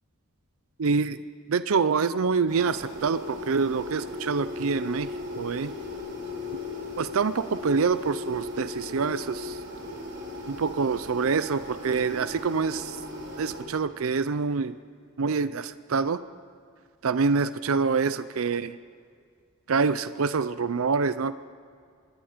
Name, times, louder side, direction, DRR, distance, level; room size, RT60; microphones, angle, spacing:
voice 1, 0.8-1.2 1.5-5.1 5.4-5.7 7.0-9.6 10.5-13.0 13.4-14.8 15.2-16.2 17.0-18.8 19.7-21.3, right 5 dB, 75° right, 14 dB, 0.5 m, -26 dB
sound 1, 2.5-13.6, left 2 dB, 55° right, 4.9 m, -37 dB
25.5 x 21.5 x 5.1 m, 2.2 s
head